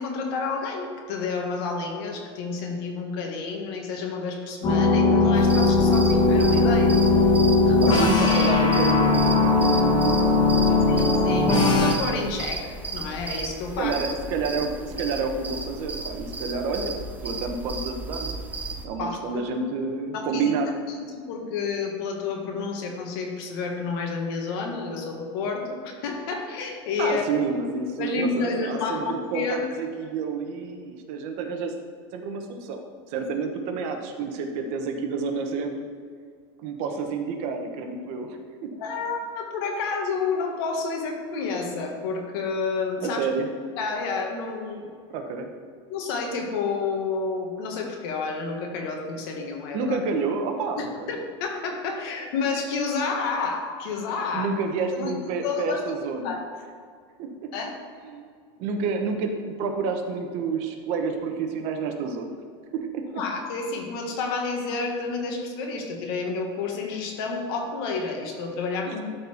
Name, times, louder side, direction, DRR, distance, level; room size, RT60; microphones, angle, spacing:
voice 1, 0.0-6.9 7.7-8.1 10.9-13.9 19.0-19.4 20.1-20.5 21.0-27.2 28.0-29.7 38.8-43.3 43.8-44.9 45.9-50.0 50.8-54.5 54.9-56.4 57.5-57.7 63.2-69.0, left 4 dB, 65° left, 2 dB, 1.6 m, -30 dB
sound 1, 4.6-11.9, left 3 dB, 35° left, 1.1 m, -19 dB
sound 2, 5.3-18.9, right 3 dB, 10° right, 0.6 m, -34 dB
voice 2, 7.8-10.3 10.6-10.8 13.8-17.0 17.2-18.4 18.8-20.7 27.0-31.7 32.1-32.8 33.1-35.9 36.6-38.7 43.0-43.5 45.1-45.5 49.7-51.1 54.3-56.3 57.2-57.3 58.0-58.2 58.6-62.3 62.7-63.2 68.8-69.0, right 4 dB, 50° right, 4 dB, 1.1 m, -29 dB
12.0 x 4.3 x 4.4 m, 2.1 s
supercardioid pair, 155°, 13 cm